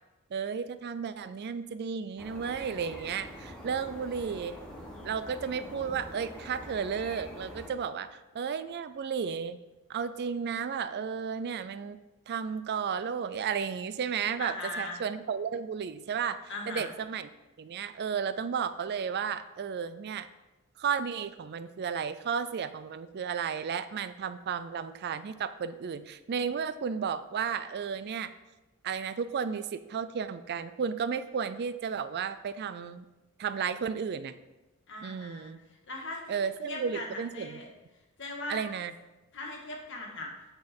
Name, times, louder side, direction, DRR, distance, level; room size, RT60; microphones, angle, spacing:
voice 1, 0.3-4.5 5.0-9.6 9.9-12.0 12.3-17.3 17.6-20.3 20.8-28.3 28.8-33.1 33.4-34.3 35.0-35.6 36.3-37.6 38.5-38.9, right 6 dB, 50° right, 13 dB, 0.4 m, -33 dB
sound 1, 2.2-7.7, equal, 5° left, 1.3 m, -45 dB
voice 2, 14.4-15.0 16.5-16.9 34.9-35.5 35.9-36.4 36.7-37.7 38.2-38.6 39.3-40.3, left 2 dB, 55° left, 0 dB, 1.8 m, -39 dB
8.8 x 5.8 x 4.3 m, 1.1 s
head